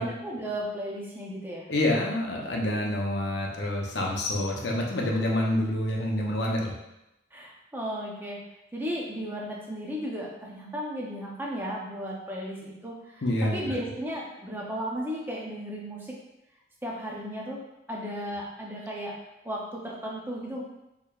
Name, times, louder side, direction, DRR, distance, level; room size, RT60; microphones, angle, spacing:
voice 1, 0.0-1.7 7.3-8.4 8.7-13.2 13.5-16.1 16.8-17.6 17.9-19.2 19.4-20.6, equal, 10° right, -3 dB, 0.5 m, -35 dB
voice 2, 1.7-6.7 13.2-13.8, left 1 dB, 60° left, -1 dB, 0.7 m, -27 dB
4.6 x 3.0 x 2.3 m, 0.92 s
head